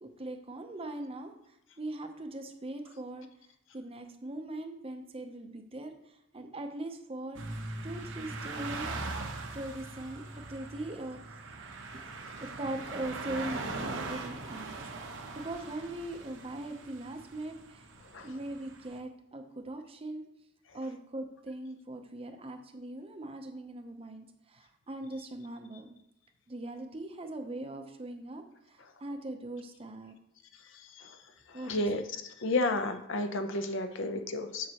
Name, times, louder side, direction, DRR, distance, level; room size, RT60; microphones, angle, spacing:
voice 1, 0.0-3.3 3.7-7.4 7.8-8.9 9.5-11.4 12.4-14.8 15.3-17.8 18.2-20.2 20.7-25.9 26.5-30.1 31.5-31.9, right 1 dB, 25° right, 6 dB, 0.6 m, -40 dB
sound 1, 7.3-19.0, right 3 dB, 60° right, 0.8 m, -41 dB
voice 2, 31.6-32.0 32.4-34.7, left 2 dB, 60° left, 7 dB, 0.6 m, -31 dB
7.5 x 6.6 x 2.9 m, 0.76 s
head